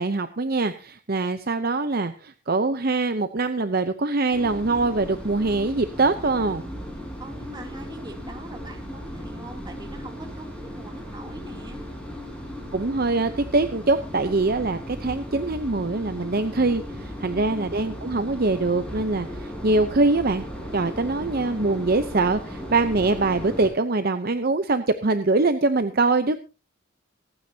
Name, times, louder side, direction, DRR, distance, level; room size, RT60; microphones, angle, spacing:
voice 1, 0.0-6.6 12.7-20.4 20.7-26.4, right 3 dB, 45° right, 10 dB, 0.7 m, -23 dB
sound 1, 4.3-23.7, equal, 5° left, 4.3 m, -36 dB
voice 2, 7.2-11.8 17.2-17.7, right 1 dB, 20° right, 2 dB, 2.9 m, -42 dB
25.5 x 9.5 x 2.8 m, 0.31 s
head